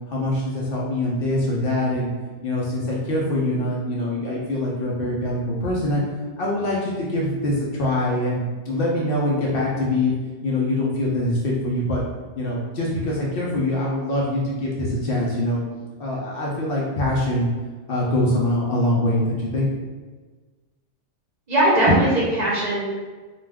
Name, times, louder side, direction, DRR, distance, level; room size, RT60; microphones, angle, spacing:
voice 1, 0.1-2.1 2.4-6.0 6.4-10.1 10.4-12.0 12.4-15.6 16.0-17.5 17.9-19.7, left 1 dB, 60° left, -4 dB, 0.7 m, -24 dB
voice 2, 21.5-22.8, right 1 dB, 45° right, -7 dB, 0.7 m, -19 dB
2.4 x 2.3 x 3.3 m, 1.3 s
omnidirectional pair, 1.2 m